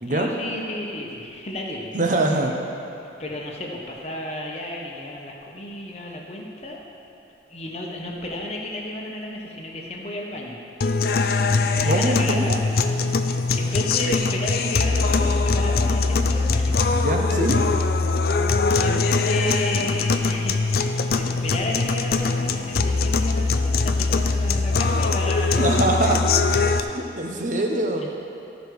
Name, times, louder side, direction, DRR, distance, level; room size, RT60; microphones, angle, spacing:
voice 1, 0.0-2.4 3.2-6.8 7.5-10.6 11.8-12.9 13.5-16.8 18.7-26.0, left 1 dB, 35° left, -1 dB, 1.1 m, -32 dB
voice 2, 1.9-2.5 11.8-12.6 16.9-17.6 25.6-26.2 26.8-28.1, right 2 dB, 45° right, 2 dB, 0.9 m, -23 dB
sound 1, 10.8-26.8, left 4 dB, 55° left, 0.4 m, -22 dB
14.5 x 5.2 x 4.7 m, 2.7 s
head